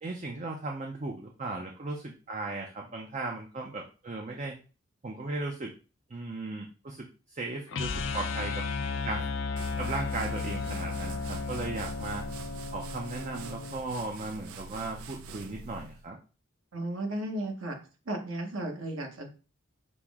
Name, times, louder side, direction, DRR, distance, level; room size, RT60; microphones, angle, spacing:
voice 1, 0.0-4.6 5.0-5.7 6.1-8.6 9.0-9.3 9.8-12.2 12.7-16.2, right 3 dB, 35° right, 1 dB, 0.5 m, -37 dB
sound 1, 7.7-13.8, left 4 dB, 60° left, 0.4 m, -34 dB
sound 2, 9.6-16.1, right 3 dB, 90° right, 0.5 m, -44 dB
voice 2, 16.7-17.8 18.1-19.3, right 1 dB, 70° right, 2 dB, 1.1 m, -34 dB
5.9 x 2.0 x 3.5 m, 0.35 s
head